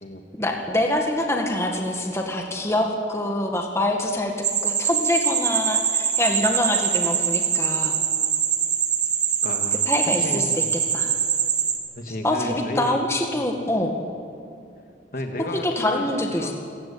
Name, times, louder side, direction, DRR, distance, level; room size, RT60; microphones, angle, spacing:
voice 1, 0.4-4.3 4.6-8.0 9.9-10.6 10.9-11.2 12.1-14.0 15.6-16.5, left 1 dB, 15° left, 2 dB, 1.8 m, -25 dB
sound 1, 4.4-11.8, right 8 dB, 40° right, 2.1 m, -23 dB
voice 2, 9.4-9.9 10.2-10.7 12.0-13.0 15.1-16.5, left 1 dB, 50° left, 4 dB, 2.1 m, -32 dB
27.5 x 16.0 x 8.7 m, 2.5 s
head